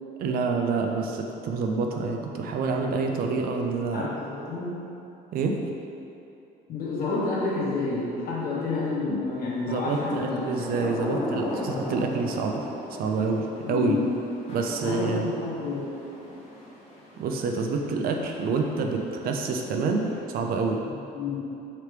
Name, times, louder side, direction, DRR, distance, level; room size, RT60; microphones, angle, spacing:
voice 1, 0.2-4.1 5.3-5.6 9.1-9.2 9.7-12.7 13.0-14.0 14.5-15.3 17.2-20.8, right 4 dB, 60° right, 3 dB, 0.4 m, -27 dB
voice 2, 3.9-4.9 6.7-10.4 13.6-14.1 14.8-15.9 20.8-21.4, left 3 dB, 60° left, -6 dB, 1.1 m, -29 dB
Thunder / Rain, 10.0-20.5, left 1 dB, 40° left, 1.0 m, -38 dB
3.3 x 2.9 x 4.6 m, 2.8 s
cardioid pair, 110°, 17 cm